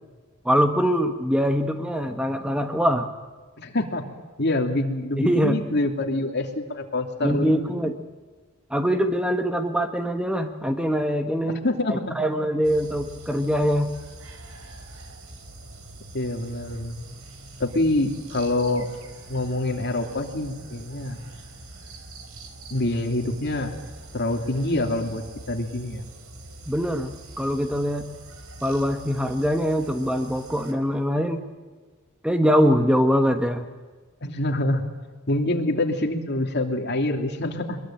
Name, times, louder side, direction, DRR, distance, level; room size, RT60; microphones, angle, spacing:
voice 1, 0.4-3.1 5.2-5.6 7.2-8.0 8.7-11.6 11.9-13.9 26.7-28.1 28.6-31.5 32.2-33.7, equal, 5° right, 6 dB, 1.2 m, -23 dB
voice 2, 3.6-4.0 4.4-7.8 11.5-12.2 16.1-17.0 17.6-18.9 19.3-21.2 22.7-23.8 24.1-26.0 34.2-34.8 35.3-37.8, left 1 dB, 55° left, 4 dB, 2.9 m, -26 dB
sound 1, 12.6-30.7, right 2 dB, 80° right, 3.5 m, -44 dB
23.0 x 22.0 x 8.9 m, 1.4 s
head